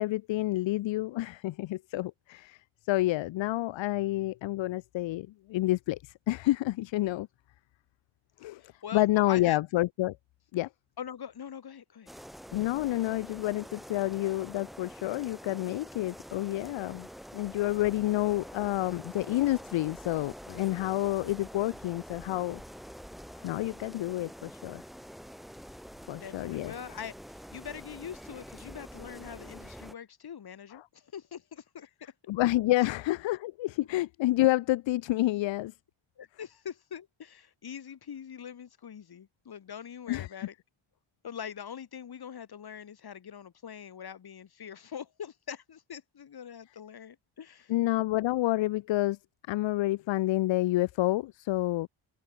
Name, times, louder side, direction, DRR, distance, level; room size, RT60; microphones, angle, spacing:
voice 1, 0.0-2.6 2.9-7.3 8.4-8.6 8.9-10.2 10.5-10.7 12.5-17.1 17.3-22.6 23.4-24.8 26.1-26.7 32.3-35.7 40.1-40.5 47.7-49.2 49.5-51.9, left 17 dB, 65° left, 0.5 m, -29 dB
voice 2, 8.6-9.6 11.0-12.1 26.2-32.1 32.8-32.9 36.2-40.5 41.2-47.7, left 8 dB, 50° left, 3.9 m, -43 dB
sound 1, 12.1-29.9, equal, ahead, 0.9 m, -46 dB
wide cardioid pair, 155°, 49 cm